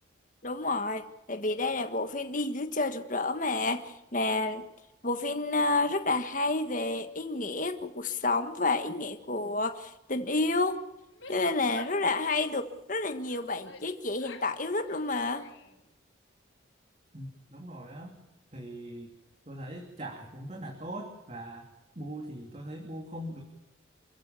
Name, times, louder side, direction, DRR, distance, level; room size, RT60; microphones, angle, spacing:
voice 1, 0.4-4.6 5.0-10.8 11.3-15.5, left 2 dB, 40° left, 1.6 m, -30 dB
Female speech woman speaking / Yell, 11.0-12.7 13.3-14.6 14.9-15.8, left 3 dB, 75° left, 5.0 m, -50 dB
voice 2, 17.1-18.1 18.5-19.1 19.5-21.7 21.9-23.4, right 1 dB, 30° right, 3.0 m, -41 dB
28.5 x 15.5 x 7.3 m
head